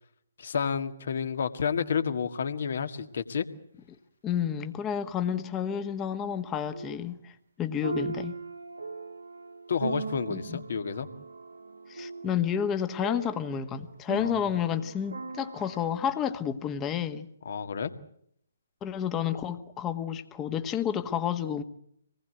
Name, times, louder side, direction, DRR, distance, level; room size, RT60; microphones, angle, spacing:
voice 1, 0.4-3.5 9.7-11.1 14.2-14.3 17.5-17.9, left 6 dB, 55° left, 10 dB, 1.9 m, -30 dB
voice 2, 4.2-7.3 7.6-8.4 10.3-10.6 11.9-17.3 18.8-21.6, left 8 dB, 15° left, 9 dB, 1.5 m, -30 dB
sound 1, 5.6-5.7 6.7-7.0 7.8-15.9, right 4 dB, 75° right, 2.0 m, -39 dB
25.5 x 19.5 x 8.1 m, 0.70 s
figure-of-eight pair, 135°, 0 cm